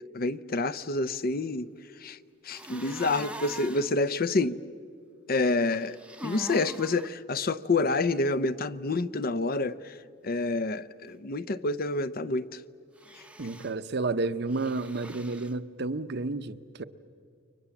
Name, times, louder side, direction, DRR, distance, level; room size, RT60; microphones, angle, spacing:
voice 1, 0.1-1.7 2.0-2.2 2.4-4.6 5.3-6.0 6.2-10.0 10.2-12.6, left 3 dB, 50° left, 0.7 m, -28 dB
sound 1, 2.5-3.9 5.7-7.1 13.0-13.7 14.5-15.5, right 1 dB, 5° right, 0.7 m, -43 dB
voice 2, 13.4-16.8, right 3 dB, 60° right, 0.8 m, -31 dB
29.5 x 23.5 x 7.1 m
head